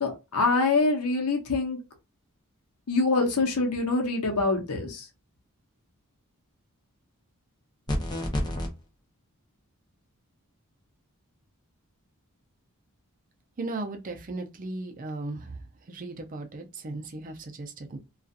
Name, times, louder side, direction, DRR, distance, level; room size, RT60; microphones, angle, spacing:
voice 1, 0.0-1.8 2.9-5.1, left 3 dB, 90° left, 0.8 m, -25 dB
sound 1, 7.9-8.7, left 1 dB, 20° left, 0.6 m, -28 dB
voice 2, 13.6-15.5 15.9-18.0, right 2 dB, 40° right, 0.5 m, -36 dB
2.6 x 2.4 x 2.4 m
head